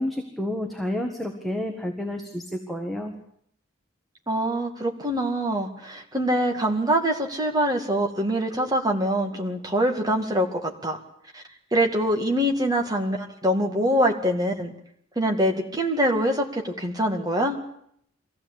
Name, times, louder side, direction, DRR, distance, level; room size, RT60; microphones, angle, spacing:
voice 1, 0.0-3.1, left 1 dB, ahead, 2 dB, 1.6 m, -30 dB
voice 2, 4.3-11.0 11.3-11.4 11.7-14.7 15.2-17.6, equal, 20° right, 3 dB, 2.2 m, -24 dB
23.0 x 15.5 x 8.6 m, 0.69 s
head